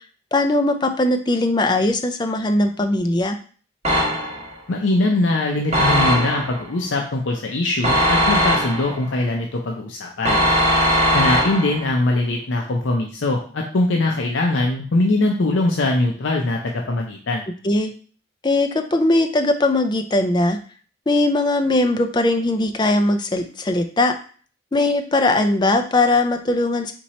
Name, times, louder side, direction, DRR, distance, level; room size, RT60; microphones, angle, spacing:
voice 1, 0.3-3.4 17.6-17.9 18.4-20.6 21.1-24.2 24.7-26.9, left 2 dB, 25° left, 6 dB, 0.4 m, -19 dB
sound 1, 3.8-4.5 5.7-6.6 7.8-9.0 10.2-11.9, equal, 35° right, 1.2 m, -19 dB
voice 2, 4.7-10.5 11.1-17.4, left 2 dB, 75° left, 1 dB, 0.6 m, -21 dB
4.4 x 2.8 x 4.2 m, 0.42 s
head